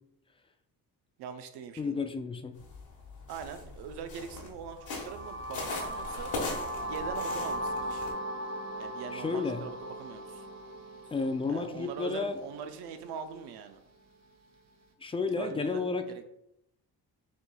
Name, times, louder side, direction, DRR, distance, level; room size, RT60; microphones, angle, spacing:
voice 1, 1.2-2.0 3.3-6.3 6.9-8.1 8.8-10.5 11.5-13.8 15.4-16.2, right 6 dB, 90° right, 8 dB, 0.6 m, -42 dB
voice 2, 1.8-2.6 9.1-9.6 11.1-12.4 15.0-16.1, left 4 dB, 15° left, 8 dB, 0.3 m, -32 dB
sound 1, 2.5-8.1, left 3 dB, 65° left, 1.3 m, -40 dB
sound 2, 4.8-12.7, equal, 45° right, 0.8 m, -38 dB
5.9 x 3.2 x 2.2 m, 0.82 s
cardioid pair, 90°, 38 cm